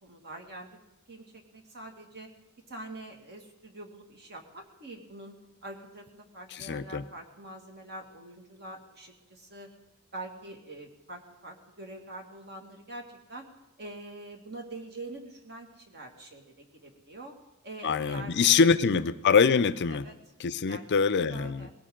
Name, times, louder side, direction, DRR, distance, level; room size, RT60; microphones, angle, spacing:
voice 1, 0.0-0.8 1.1-2.3 2.7-9.7 10.1-13.5 13.8-17.3 17.6-18.7 19.9-20.1 20.7-20.8 21.2-21.7, right 2 dB, 50° right, 3 dB, 2.1 m, -44 dB
voice 2, 6.5-7.0 17.8-20.0 20.4-21.7, left 5 dB, 50° left, 14 dB, 0.5 m, -24 dB
20.0 x 17.0 x 3.8 m, 0.92 s
head